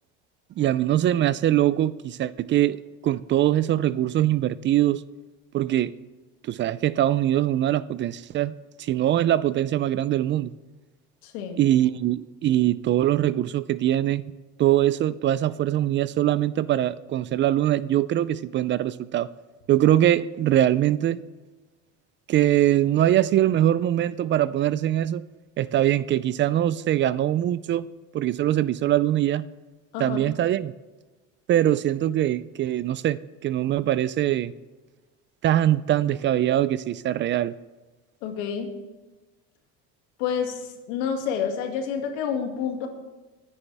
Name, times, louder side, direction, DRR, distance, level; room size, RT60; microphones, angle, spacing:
voice 1, 0.6-5.0 5.5-5.9 6.4-8.5 8.8-10.5 11.6-14.2 14.6-19.3 19.7-21.2 22.3-25.2 25.6-27.8 28.1-29.4 30.0-30.7 31.5-34.5 35.4-37.5, right 12 dB, 35° right, 0.4 m, -22 dB
voice 2, 11.2-11.6 29.9-30.3 38.2-38.8 40.2-42.9, left 7 dB, 90° left, 2.2 m, -29 dB
22.0 x 9.8 x 3.4 m
cardioid pair, 130°, 32 cm